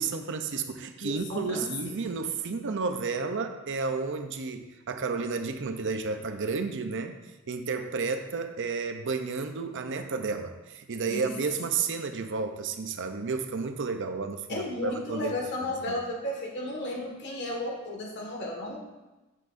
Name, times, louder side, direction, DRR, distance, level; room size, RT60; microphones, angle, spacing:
voice 1, 0.0-7.2 7.5-15.3 15.9-16.0, right 4 dB, 60° right, 7 dB, 0.6 m, -32 dB
voice 2, 1.0-2.0 11.1-11.3 14.5-18.8, left 1 dB, 55° left, -1 dB, 1.8 m, -34 dB
9.2 x 7.6 x 2.6 m, 1.1 s
head